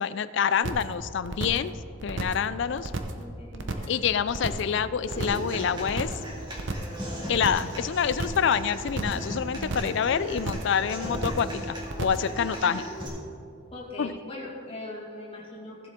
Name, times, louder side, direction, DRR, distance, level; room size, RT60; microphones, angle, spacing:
voice 1, 0.0-1.7 2.0-2.9 3.9-6.1 7.3-12.9 14.0-14.2, left 7 dB, 60° left, 15 dB, 0.4 m, -27 dB
sound 1, 0.6-0.9 1.2-1.7 2.0-2.5 2.8-3.2 3.5-4.0 4.3-4.7 5.0-5.5 5.8-6.3 6.6-7.0 7.3-7.7 8.0-8.5 8.8-9.3 9.5-10.0 10.3-10.8 11.0-11.5 11.8-12.3, right 2 dB, 60° right, 0.8 m, -33 dB
voice 2, 2.9-3.9 13.7-15.9, left 1 dB, 30° left, -5 dB, 2.1 m, -41 dB
Human voice / Acoustic guitar, 5.1-13.1, equal, 20° right, 2.1 m, -37 dB
16.0 x 7.4 x 3.7 m, 2.4 s
head